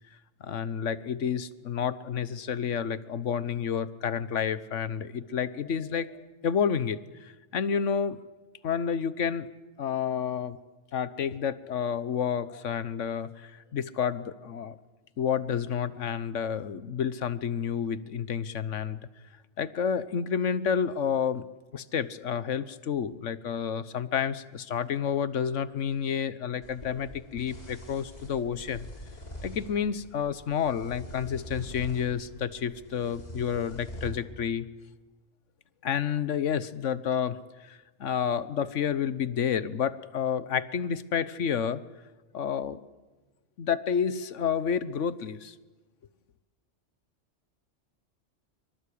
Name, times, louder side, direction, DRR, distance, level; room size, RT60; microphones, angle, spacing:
voice 1, 0.4-8.2 8.6-9.5 9.8-10.6 10.9-14.7 15.2-19.0 19.6-21.4 21.7-28.9 29.4-34.7 35.8-41.8 42.3-42.8 43.6-45.5, left 7 dB, 85° left, 15 dB, 1.3 m, -30 dB
sound 1, 26.6-34.1, left 1 dB, 35° left, 4.9 m, -44 dB
24.0 x 23.5 x 8.6 m, 1.2 s
omnidirectional pair, 1.2 m